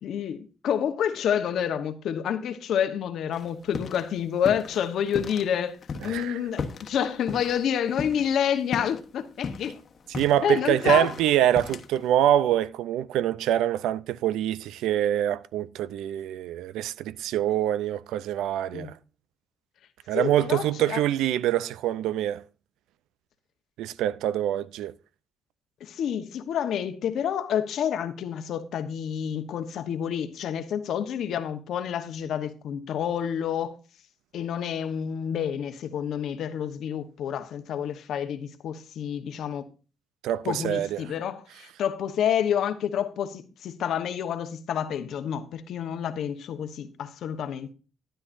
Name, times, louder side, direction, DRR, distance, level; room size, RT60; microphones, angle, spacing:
voice 1, 0.0-5.8 6.0-9.8 10.4-11.1 18.7-18.9 20.1-21.0 25.8-33.8 34.3-39.6 40.4-47.7, left 9 dB, 75° left, 1.0 m, -29 dB
sound 1, 3.3-4.1 4.4-5.5 5.8-8.4 8.7-9.0 9.3-12.1, left 5 dB, 50° left, 1.1 m, -35 dB
voice 2, 6.0-6.4 10.2-19.0 20.1-22.4 23.8-24.9 40.2-41.0, right 12 dB, 90° right, 0.4 m, -25 dB
12.5 x 10.0 x 2.6 m
cardioid pair, 90°, 0 cm